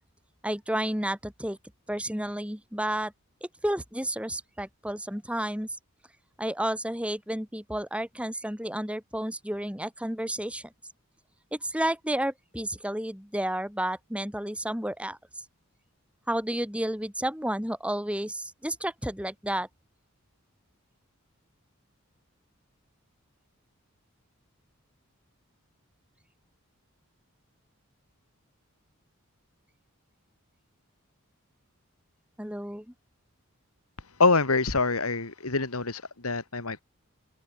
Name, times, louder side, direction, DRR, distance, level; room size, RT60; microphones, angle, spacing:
voice 1, 0.4-1.6 1.9-3.1 3.4-5.8 6.4-10.7 11.5-15.2 16.3-19.7 32.4-32.9, right 1 dB, 5° right, 3.6 m, -31 dB
voice 2, 34.2-36.8, left 3 dB, 85° left, 2.4 m, -25 dB
open air
head